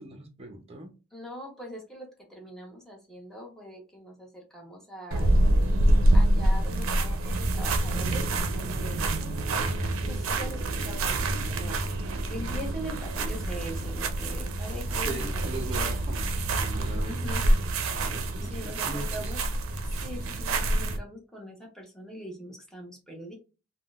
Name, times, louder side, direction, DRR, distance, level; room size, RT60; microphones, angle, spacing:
voice 1, 0.0-0.9 14.9-17.2 17.9-19.3, right 2 dB, 30° right, 0.6 m, -39 dB
voice 2, 1.1-5.3 6.1-9.7 10.0-11.8 12.3-15.4 15.7-16.0 17.0-17.4 18.4-19.4 20.0-23.3, equal, ahead, 0.9 m, -42 dB
sound 1, 5.1-21.0, right 1 dB, 75° right, 0.5 m, -26 dB
3.6 x 2.2 x 2.3 m
head